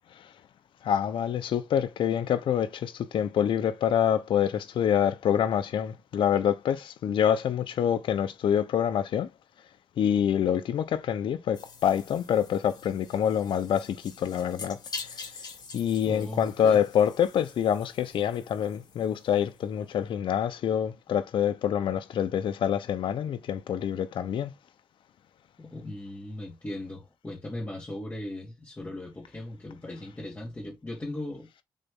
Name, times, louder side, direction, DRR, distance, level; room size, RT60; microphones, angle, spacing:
voice 1, 0.8-9.3 10.0-14.8 15.7-24.5, left 9 dB, 80° left, 1.0 m, -26 dB
sound 1, 11.5-19.7, left 4 dB, 55° left, 2.9 m, -45 dB
voice 2, 16.0-16.8 21.1-21.2 25.6-31.6, left 1 dB, 20° left, 2.6 m, -38 dB
7.6 x 4.1 x 3.8 m
cardioid pair, 105°, 8 cm